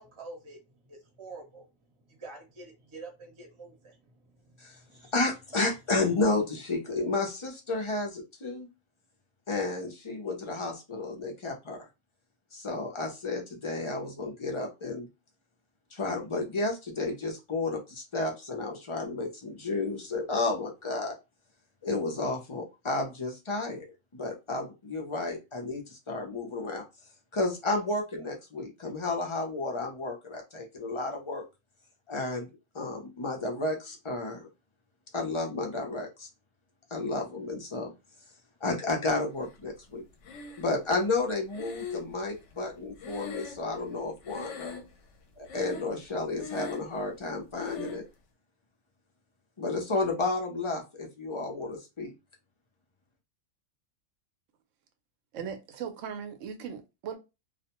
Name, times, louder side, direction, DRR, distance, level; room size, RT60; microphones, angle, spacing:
voice 1, 0.0-5.1, right 3 dB, 30° right, 0.7 m, -48 dB
voice 2, 5.1-8.7 9.5-11.8 12.5-15.1 15.9-21.2 21.8-23.8 24.1-26.8 27.3-31.4 32.1-32.5 32.7-34.5 35.1-36.3 36.9-37.9 38.6-40.0 40.6-44.7 45.4-48.1 49.6-52.1, left 3 dB, 45° left, 0.4 m, -32 dB
Breathing, 40.2-41.0 41.5-44.0 44.2-45.1 45.4-46.0 46.3-47.0 47.6-48.1, left 5 dB, 70° left, 0.9 m, -41 dB
voice 3, 55.3-57.2, right 7 dB, 75° right, 1.0 m, -38 dB
2.4 x 2.1 x 2.9 m
omnidirectional pair, 1.3 m